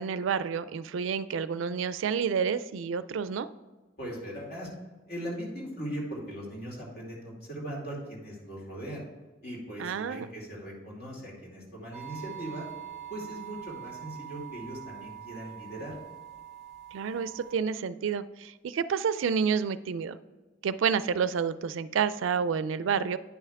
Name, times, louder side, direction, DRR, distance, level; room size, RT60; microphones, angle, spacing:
voice 1, 0.0-3.5 9.8-10.3 16.9-20.2 20.6-23.2, right 6 dB, 80° right, 14 dB, 0.4 m, -29 dB
voice 2, 4.0-4.7 5.1-9.0 9.4-12.7 13.1-16.0, right 1 dB, 55° left, -3 dB, 2.4 m, -39 dB
sound 1, 11.9-17.5, right 11 dB, 5° right, 1.2 m, -44 dB
9.7 x 5.6 x 3.5 m, 1.3 s
head